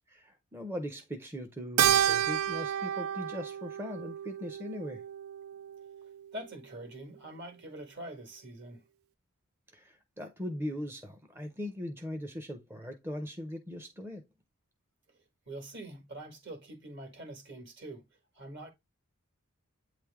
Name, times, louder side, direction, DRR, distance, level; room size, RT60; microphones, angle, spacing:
voice 1, 0.1-5.0 9.7-14.2, left 1 dB, 10° right, 0.6 m, -40 dB
Keyboard (musical), 1.8-6.4, right 10 dB, 75° right, 0.3 m, -30 dB
voice 2, 6.3-8.8 15.5-18.0 18.3-18.7, right 1 dB, 55° right, 1.8 m, -44 dB
8.4 x 3.2 x 3.5 m
head